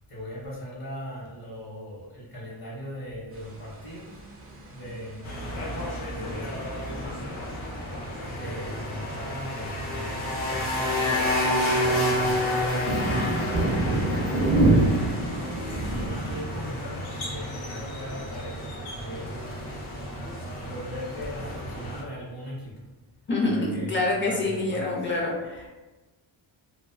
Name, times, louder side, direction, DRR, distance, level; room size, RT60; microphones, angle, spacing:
voice 1, 0.1-4.2 4.7-7.7 8.0-11.4 12.1-12.9 13.2-15.6 15.8-19.4 20.6-22.7 23.4-25.2, equal, 50° left, -5 dB, 0.8 m, -40 dB
sound 1, 3.3-16.4, right 2 dB, 30° right, 0.4 m, -30 dB
sound 2, 5.2-22.0, left 1 dB, 85° left, 0.8 m, -30 dB
voice 2, 23.3-25.7, left 2 dB, 25° left, -2 dB, 0.5 m, -26 dB
2.4 x 2.1 x 2.5 m, 1.2 s
wide cardioid pair, 140°, 48 cm